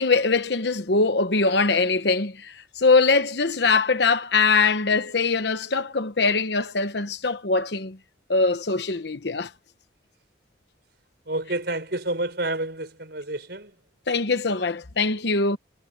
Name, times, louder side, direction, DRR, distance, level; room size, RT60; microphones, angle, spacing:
voice 1, 0.0-8.0 8.3-9.5 14.1-15.6, left 4 dB, 65° left, 1.0 m, -22 dB
voice 2, 11.3-13.7, right 2 dB, 60° right, 6.4 m, -29 dB
head